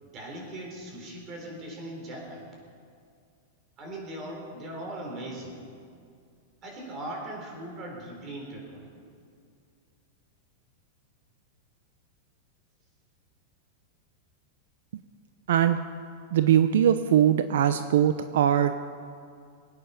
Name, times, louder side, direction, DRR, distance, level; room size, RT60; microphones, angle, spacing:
voice 1, 0.0-2.5 3.8-5.6 6.6-8.9, right 1 dB, 30° right, 0 dB, 3.9 m, -39 dB
voice 2, 15.5-15.8 16.3-18.7, right 10 dB, 80° right, 11 dB, 0.6 m, -21 dB
23.0 x 9.3 x 5.8 m, 2.3 s
supercardioid pair, 160°, 0 cm